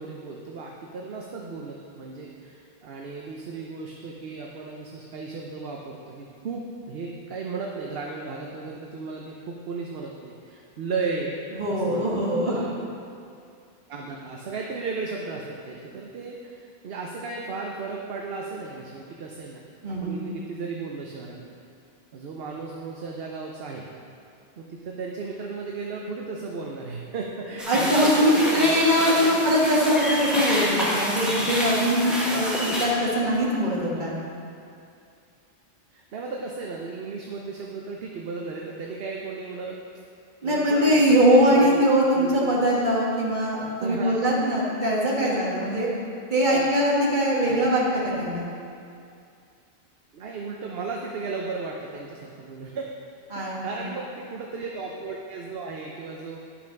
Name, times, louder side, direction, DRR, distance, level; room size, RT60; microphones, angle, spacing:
voice 1, 0.0-11.4 11.7-12.8 13.9-21.6 22.1-23.9 24.6-28.8 29.2-29.3 33.9-34.2 35.9-39.8 40.4-42.6 43.8-44.3 45.2-45.3 45.7-45.9 46.5-46.7 47.4-47.7 50.1-52.9 53.3-56.4, right 4 dB, 65° right, -1 dB, 1.0 m, -35 dB
voice 2, 11.5-12.6 19.8-20.3 27.7-34.1 40.4-45.9 46.3-48.5 53.3-53.8, equal, 45° right, -5 dB, 1.8 m, -22 dB
sound 1, 27.6-32.8, equal, ahead, 1.4 m, -27 dB
10.5 x 6.0 x 5.2 m, 2.5 s
omnidirectional pair, 1.1 m